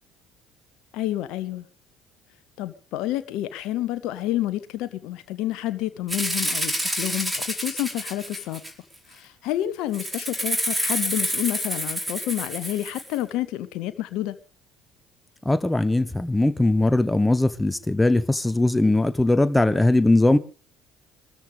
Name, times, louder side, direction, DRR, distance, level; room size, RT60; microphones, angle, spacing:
voice 1, 0.9-1.6 2.6-8.6 9.1-14.4, left 14 dB, 60° left, 1.0 m, -29 dB
Rattle (instrument), 6.1-8.9 9.9-13.2, equal, 15° right, 4.4 m, -28 dB
voice 2, 15.4-20.4, left 2 dB, 10° left, 1.2 m, -20 dB
23.0 x 13.5 x 3.5 m
figure-of-eight pair, 55°, 0 cm